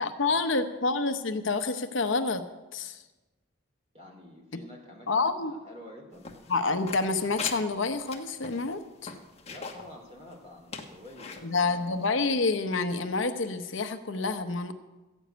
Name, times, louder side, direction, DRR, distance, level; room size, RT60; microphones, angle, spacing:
voice 1, 0.0-2.5 2.7-3.0 5.1-5.5 6.5-9.1 11.4-14.7, left 3 dB, 65° left, 8 dB, 0.8 m, -28 dB
voice 2, 3.9-6.3 9.5-11.8, left 1 dB, 30° right, 0 dB, 3.4 m, -48 dB
sound 1, 6.2-9.9 10.3-10.4 10.7-11.4 12.0-12.1, left 4 dB, 30° left, 1.2 m, -40 dB
14.0 x 7.2 x 9.2 m, 1.1 s
head